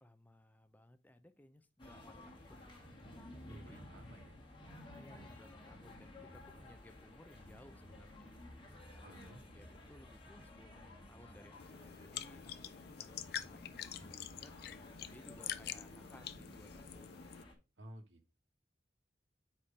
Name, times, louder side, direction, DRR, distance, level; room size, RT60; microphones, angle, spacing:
voice 1, 0.0-2.8 3.4-3.8 4.9-8.4 8.9-14.5 15.1-17.2, left 1 dB, 10° left, 0.5 m, -61 dB
sound 1, 1.8-17.5, left 1 dB, 25° left, 1.4 m, -54 dB
voice 2, 3.4-4.4 9.0-9.4 17.8-18.4, right 1 dB, 75° right, 1.2 m, -54 dB
sound 2, 11.6-17.4, left 10 dB, 55° left, 0.5 m, -46 dB
4.9 x 4.4 x 5.0 m
head